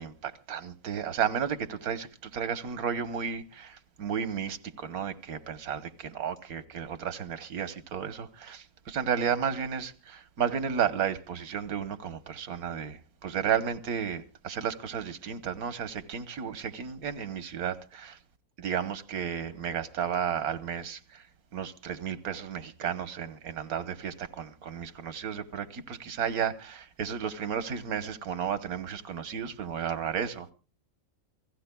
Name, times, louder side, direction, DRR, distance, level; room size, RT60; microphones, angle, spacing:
voice 1, 0.0-18.2 18.6-21.3 21.5-30.5, right 7 dB, 90° right, 1.6 m, -33 dB
28.0 x 17.5 x 2.2 m
omnidirectional pair, 1.5 m